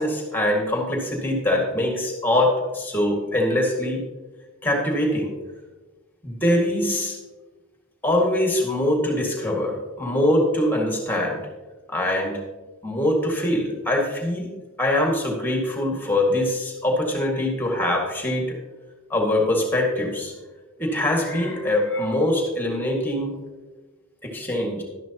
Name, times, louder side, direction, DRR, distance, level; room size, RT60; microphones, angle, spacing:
voice 1, 0.0-4.0 4.6-5.3 6.2-7.2 8.0-11.4 11.9-12.4 12.8-14.5 14.8-18.6 19.1-20.3 20.8-23.4 24.2-24.8, left 1 dB, 10° left, 0 dB, 2.0 m, -23 dB
12.0 x 11.0 x 2.9 m, 1.2 s
head